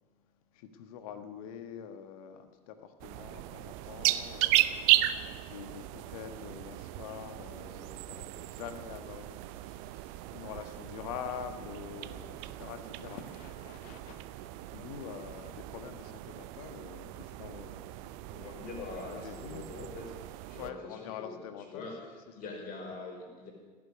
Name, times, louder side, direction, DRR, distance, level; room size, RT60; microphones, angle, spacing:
voice 1, 0.5-18.7 19.0-19.7 20.6-22.1, left 8 dB, 60° left, 8 dB, 1.5 m, -46 dB
sound 1, 3.0-20.7, right 16 dB, 55° right, 0.7 m, -35 dB
voice 2, 18.3-20.1 20.5-21.4 21.7-22.0 22.3-23.5, left 3 dB, 45° left, 0 dB, 5.2 m, -43 dB
17.0 x 7.6 x 9.6 m, 1.4 s
figure-of-eight pair, 65°, 21 cm